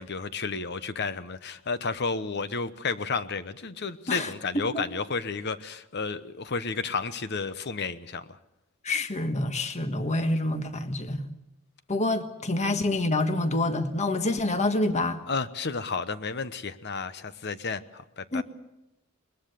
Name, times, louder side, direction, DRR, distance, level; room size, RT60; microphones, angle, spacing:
voice 1, 0.0-8.2 15.3-18.4, left 4 dB, 55° left, 1.0 m, -32 dB
voice 2, 8.8-11.3 11.9-15.2 18.3-18.4, left 2 dB, 35° left, 1.4 m, -27 dB
21.0 x 21.0 x 6.8 m
head